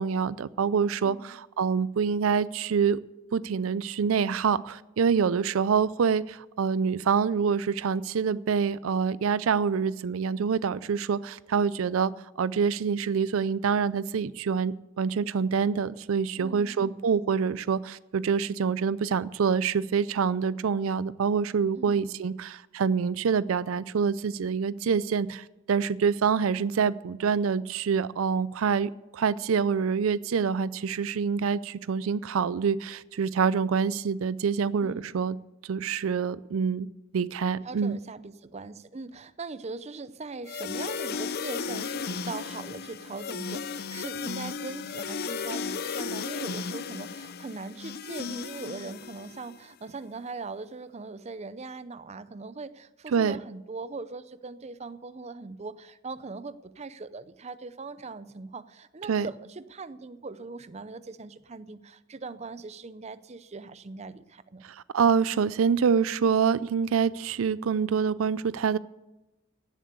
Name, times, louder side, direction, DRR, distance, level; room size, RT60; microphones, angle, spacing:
voice 1, 0.0-3.0 3.3-12.1 12.4-35.4 35.6-36.9 37.1-38.0 53.1-53.4 59.1-59.3 64.6-68.8, right 6 dB, 85° right, 18 dB, 0.4 m, -26 dB
voice 2, 1.0-1.4 16.4-17.1 21.8-22.0 34.8-35.2 37.6-64.6, right 3 dB, 30° right, 14 dB, 0.6 m, -40 dB
sound 1, 40.5-49.6, left 5 dB, 50° left, 0.6 m, -35 dB
16.0 x 7.5 x 8.2 m, 1.0 s
head